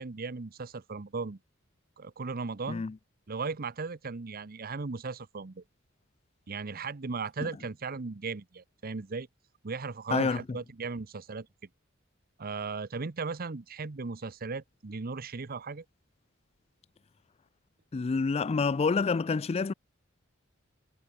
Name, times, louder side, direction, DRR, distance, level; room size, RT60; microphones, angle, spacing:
voice 1, 0.0-1.4 2.0-2.8 3.3-5.6 6.5-9.3 9.6-11.5 12.4-15.8, right 4 dB, 45° right, 0.8 m, -37 dB
voice 2, 10.1-10.4 17.9-19.7, left 4 dB, 30° left, 0.4 m, -28 dB
head